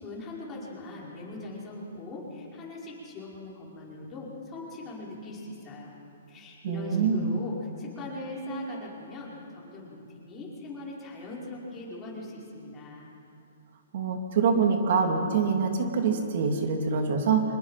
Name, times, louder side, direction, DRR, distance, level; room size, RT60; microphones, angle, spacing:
voice 1, 0.0-5.9 6.3-13.1, left 2 dB, 20° left, -5 dB, 5.3 m, -40 dB
voice 2, 6.6-7.3 13.9-17.4, right 5 dB, 55° right, 4 dB, 2.5 m, -25 dB
25.0 x 21.0 x 5.8 m, 2.7 s
hypercardioid pair, 150°, 0 cm